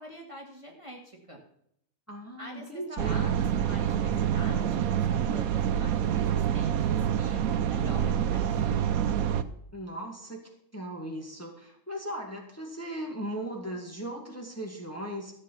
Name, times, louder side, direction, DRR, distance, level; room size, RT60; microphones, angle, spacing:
voice 1, 0.0-1.4 2.4-8.8, right 1 dB, 20° right, -1 dB, 2.0 m, -45 dB
voice 2, 2.1-3.4 9.7-10.4 10.7-15.3, right 1 dB, 10° left, 1 dB, 2.0 m, -37 dB
sound 1, 3.0-9.4, right 9 dB, 80° right, 1.2 m, -27 dB
14.0 x 7.5 x 5.8 m, 0.72 s
omnidirectional pair, 1.5 m